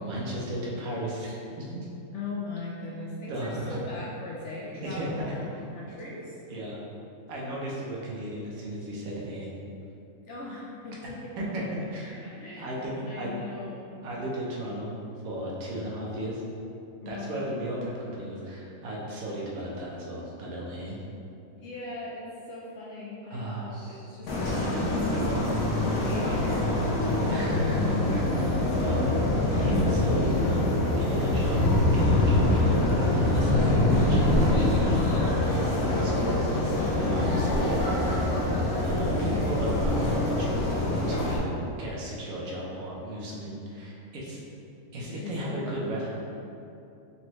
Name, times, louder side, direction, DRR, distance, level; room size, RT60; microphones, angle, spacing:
voice 1, 0.0-1.9 3.3-3.8 4.8-5.3 6.5-6.9 7.3-9.5 11.4-13.3 14.0-15.0 15.2-16.4 17.1-21.0 23.2-24.8 25.1-25.7 26.8-28.4 28.8-29.0 29.5-31.6 31.9-32.8 33.3-36.5 36.9-38.1 38.8-44.4 44.9-46.1, right 1 dB, 85° right, -4 dB, 1.3 m, -35 dB
voice 2, 2.1-6.4 10.3-11.3 12.4-12.8 13.0-13.9 17.0-17.5 21.6-25.1 25.9-27.4 28.4-28.7 39.0-39.5 45.2-46.1, left 3 dB, 65° left, -4 dB, 0.8 m, -39 dB
sound 1, 24.3-41.4, left 1 dB, 85° left, 1.1 m, -24 dB
4.3 x 3.1 x 2.9 m, 2.7 s
omnidirectional pair, 1.5 m